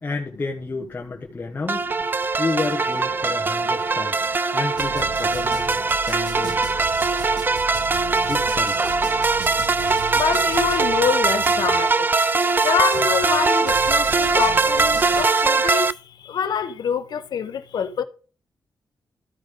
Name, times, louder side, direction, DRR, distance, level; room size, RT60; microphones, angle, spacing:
voice 1, 0.0-1.9 2.4-4.2 4.5-5.7 6.1-6.6 8.2-8.8, left 3 dB, 25° left, 1.2 m, -30 dB
sound 1, 1.7-15.9, right 3 dB, 30° right, 0.4 m, -21 dB
sound 2, 4.7-11.9 12.2-12.3 12.9-15.2, right 6 dB, 85° right, 1.2 m, -37 dB
voice 2, 10.1-11.9 12.6-15.9 16.2-18.0, left 7 dB, 75° left, 0.9 m, -25 dB
13.5 x 5.2 x 3.7 m
wide cardioid pair, 115°, 7 cm